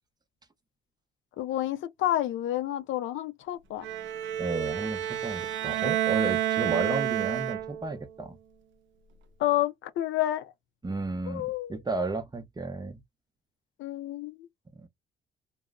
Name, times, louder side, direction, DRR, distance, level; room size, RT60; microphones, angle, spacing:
voice 1, 1.4-3.9 9.4-10.5 11.3-11.8 13.8-14.5, left 13 dB, 75° left, 0.5 m, -29 dB
Bowed string instrument, 3.8-8.0, right 12 dB, 75° right, 0.5 m, -29 dB
voice 2, 4.4-8.4 10.8-13.0 14.8-14.9, right 3 dB, 20° right, 0.6 m, -33 dB
2.3 x 2.0 x 3.5 m
cardioid pair, 90°, 20 cm